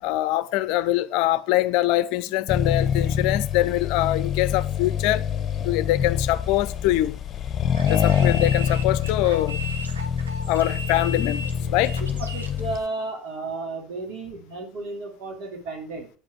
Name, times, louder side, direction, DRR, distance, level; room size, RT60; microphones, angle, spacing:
voice 1, 0.0-5.3 5.6-7.2 7.9-9.6 10.5-12.0, left 15 dB, 65° left, 0.5 m, -23 dB
Accelerating revving vroom, 2.5-12.9, left 8 dB, 40° left, 0.8 m, -25 dB
sound 1, 7.7-12.6, equal, 90° right, 1.0 m, -36 dB
voice 2, 12.0-16.1, right 2 dB, 60° right, 3.0 m, -33 dB
8.9 x 5.1 x 5.9 m
hypercardioid pair, 65°, 0 cm